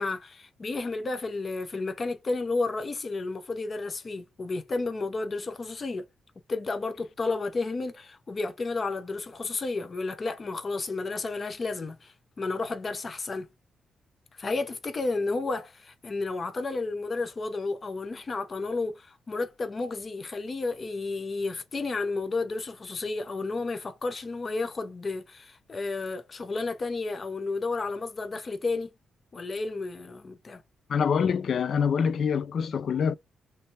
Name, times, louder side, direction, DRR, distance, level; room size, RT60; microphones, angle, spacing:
voice 1, 0.0-6.0 6.5-13.5 14.4-28.9 29.3-30.6, left 3 dB, 30° left, 0.7 m, -32 dB
voice 2, 30.9-33.2, left 6 dB, 50° left, 0.3 m, -25 dB
3.3 x 3.2 x 2.7 m
cardioid pair, 145°, 0 cm